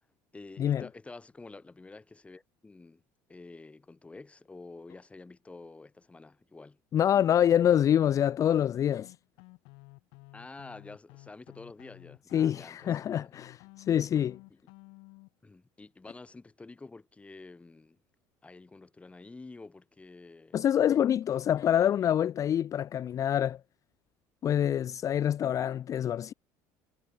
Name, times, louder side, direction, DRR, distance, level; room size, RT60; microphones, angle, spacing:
voice 1, 0.3-3.0 3.3-6.8 7.3-7.6 10.3-13.3 15.4-18.0 18.4-20.6 21.7-22.3, left 3 dB, 15° left, 3.6 m, -49 dB
voice 2, 6.9-9.1 12.3-14.4 20.5-23.6 24.4-26.3, left 10 dB, 40° left, 0.6 m, -26 dB
sound 1, 8.4-15.3, left 27 dB, 75° left, 3.1 m, -53 dB
supercardioid pair, 115°, 9 cm